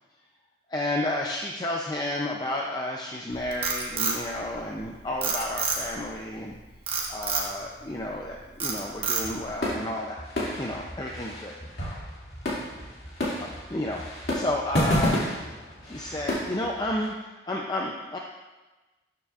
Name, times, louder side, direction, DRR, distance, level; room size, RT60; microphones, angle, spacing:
voice 1, 0.7-6.6 7.1-10.2 10.6-11.5 12.8-14.0 14.3-15.5 15.8-18.2, left 1 dB, 20° left, -1 dB, 0.5 m, -32 dB
Frog, 3.3-4.8 5.2-6.1 6.9-7.5 8.0-8.3 8.6-9.5, right 5 dB, 30° right, 1.1 m, -28 dB
sound 1, 9.2-17.1, left 1 dB, 60° left, 2.4 m, -31 dB
12.5 x 6.8 x 2.5 m, 1.2 s
head